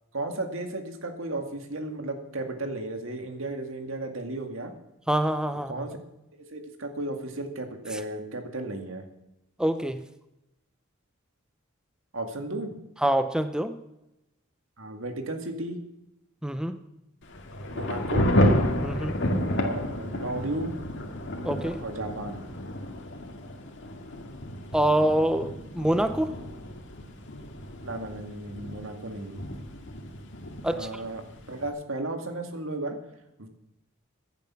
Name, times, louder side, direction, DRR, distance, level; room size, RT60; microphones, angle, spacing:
voice 1, 0.1-4.7 5.7-6.0 6.4-9.0 12.1-12.7 14.8-15.8 17.7-18.3 19.5-20.7 21.8-22.4 27.8-29.4 30.7-33.0 33.4-33.5, right 2 dB, 70° right, 5 dB, 2.1 m, -34 dB
voice 2, 5.1-5.9 7.9-8.0 9.6-10.0 13.0-13.8 16.4-16.8 18.8-19.2 21.4-21.8 24.7-26.3 30.6-30.9, right 1 dB, 5° right, 9 dB, 0.6 m, -25 dB
Thunder / Rain, 17.2-31.7, left 1 dB, 60° left, 2.1 m, -31 dB
15.5 x 10.5 x 5.8 m, 0.90 s
head